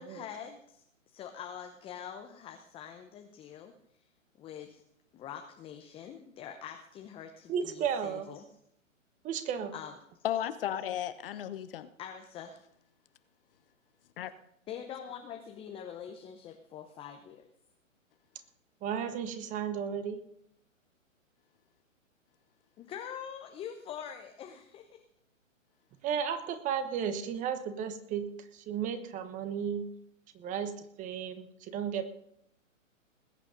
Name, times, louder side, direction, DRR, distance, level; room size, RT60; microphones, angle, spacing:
voice 1, 0.0-3.7 4.0-4.1 4.4-4.8 5.1-8.4 9.7-9.9 12.0-12.6 14.7-17.5 22.8-25.0, left 8 dB, 15° left, 5 dB, 0.8 m, -44 dB
voice 2, 7.5-8.3 9.2-9.7 18.8-20.2 26.0-29.9 30.3-30.7 31.0-32.1, right 8 dB, 20° right, 10 dB, 1.2 m, -34 dB
voice 3, 10.2-11.9 14.2-14.3, left 11 dB, 45° left, 12 dB, 1.0 m, -34 dB
20.5 x 8.5 x 5.1 m, 0.74 s
hypercardioid pair, 130°, 40 cm